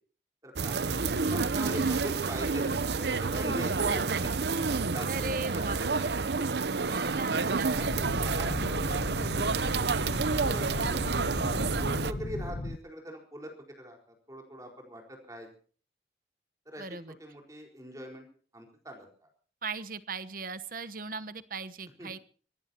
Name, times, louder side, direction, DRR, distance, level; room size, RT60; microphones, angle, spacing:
voice 1, 0.4-0.8 1.3-4.3 4.6-6.0 8.2-9.6 10.4-11.3 11.8-13.5 13.8-14.0 14.3-15.5 16.7-16.8 17.2-18.3 18.5-19.1 22.0-22.1, equal, 20° right, 2 dB, 4.4 m, -42 dB
sound 1, 0.6-12.1, right 4 dB, 70° right, 0.8 m, -29 dB
voice 2, 5.1-6.1 6.9-8.0 16.8-17.2 19.6-22.2, right 4 dB, 50° right, 13 dB, 1.1 m, -38 dB
sound 2, 7.7-12.8, left 2 dB, 50° left, 0.7 m, -35 dB
24.5 x 19.0 x 2.9 m, 0.42 s
head